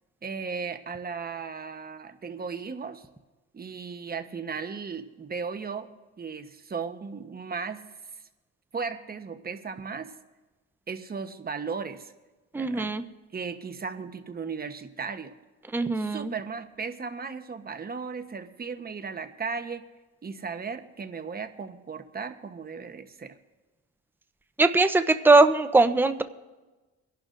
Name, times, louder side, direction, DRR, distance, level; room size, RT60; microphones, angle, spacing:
voice 1, 0.2-3.1 3.5-5.9 6.2-7.9 8.7-10.1 10.9-12.1 12.5-13.0 13.3-15.3 16.0-19.8 20.2-23.4, right 5 dB, 30° right, 8 dB, 1.0 m, -36 dB
voice 2, 12.5-13.0 15.7-16.3 24.6-26.2, right 3 dB, 5° right, 9 dB, 0.7 m, -20 dB
24.0 x 11.5 x 2.6 m, 1.2 s
cardioid pair, 90°, 30 cm